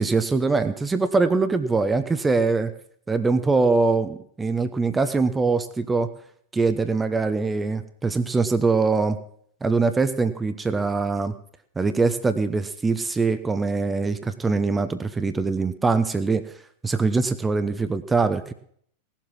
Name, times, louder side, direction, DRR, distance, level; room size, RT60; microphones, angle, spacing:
voice 1, 0.0-2.7 3.1-6.1 6.5-9.2 9.6-11.3 11.8-16.5 16.8-18.5, right 4 dB, 10° right, 10 dB, 0.8 m, -23 dB
18.0 x 7.4 x 6.0 m, 0.63 s
figure-of-eight pair, 90°, 0 cm